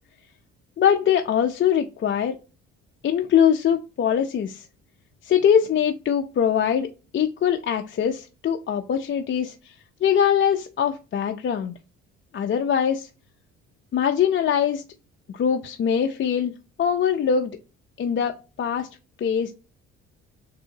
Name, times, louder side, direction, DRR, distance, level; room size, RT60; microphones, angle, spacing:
voice 1, 0.8-2.4 3.0-4.7 5.2-9.7 10.0-11.7 12.3-13.1 13.9-14.8 15.3-17.5 18.0-18.9 19.2-19.5, left 8 dB, 35° left, 3 dB, 0.6 m, -22 dB
6.9 x 2.7 x 2.8 m, 0.32 s
hypercardioid pair, 50°, 35 cm